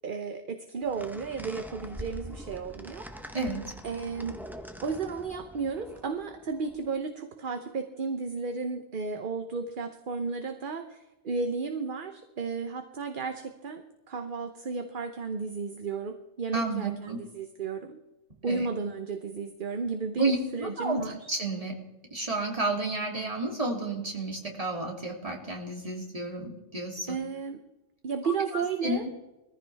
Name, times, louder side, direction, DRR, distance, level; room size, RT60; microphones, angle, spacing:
voice 1, 0.0-3.1 3.8-4.4 4.8-13.8 14.1-18.0 18.4-21.3 27.1-27.6 28.0-29.1, right 4 dB, 45° right, 7 dB, 1.0 m, -33 dB
sound 1, 0.8-6.9, equal, ahead, 0.8 m, -44 dB
voice 2, 3.3-3.6 16.5-17.2 18.5-18.6 20.2-21.8 22.1-27.1 28.2-28.3 28.8-29.0, right 2 dB, 30° right, -1 dB, 2.9 m, -31 dB
21.0 x 14.5 x 3.5 m, 1.0 s
omnidirectional pair, 1.3 m